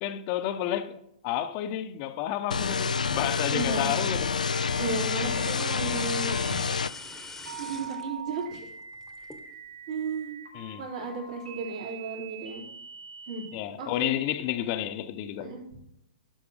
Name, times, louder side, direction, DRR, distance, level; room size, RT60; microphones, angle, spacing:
voice 1, 0.0-4.5 10.5-10.8 13.5-15.6, left 12 dB, 40° left, 0.9 m, -31 dB
sound 1, 2.5-6.9, left 5 dB, 85° left, 0.4 m, -28 dB
voice 2, 3.5-3.9 4.8-6.6 7.6-8.7 9.9-10.4 10.8-12.6 13.3-13.4 13.8-14.2 15.4-15.6, right 4 dB, 60° right, 4.0 m, -34 dB
sound 2, 4.5-13.5, right 4 dB, 80° right, 3.7 m, -44 dB
sound 3, 5.2-8.4 8.8-9.5, left 3 dB, 5° left, 1.2 m, -43 dB
12.0 x 5.9 x 5.0 m
hypercardioid pair, 115°, 4 cm